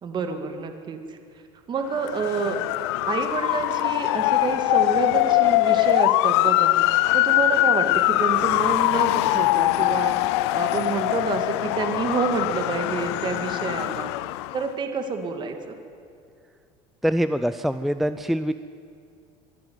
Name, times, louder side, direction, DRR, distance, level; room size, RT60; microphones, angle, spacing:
voice 1, 0.0-1.2 1.7-2.6 3.1-6.8 7.1-14.1 14.5-15.7, right 4 dB, 35° right, 6 dB, 2.1 m, -28 dB
Motor vehicle (road) / Siren, 2.0-14.7, left 18 dB, 85° left, 0.6 m, -22 dB
voice 2, 17.0-18.5, equal, ahead, 12 dB, 0.5 m, -24 dB
23.5 x 12.5 x 9.6 m, 2.3 s
supercardioid pair, 115°, 14 cm